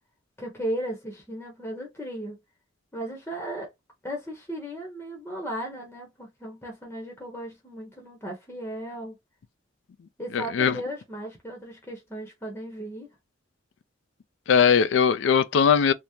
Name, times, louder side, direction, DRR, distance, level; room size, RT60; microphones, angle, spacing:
voice 1, 0.4-2.4 2.9-3.7 4.0-9.2 10.2-13.1, right 1 dB, 10° left, 0.8 m, -36 dB
voice 2, 10.3-10.8 14.5-15.9, left 7 dB, 75° left, 0.4 m, -20 dB
3.5 x 2.0 x 2.7 m
head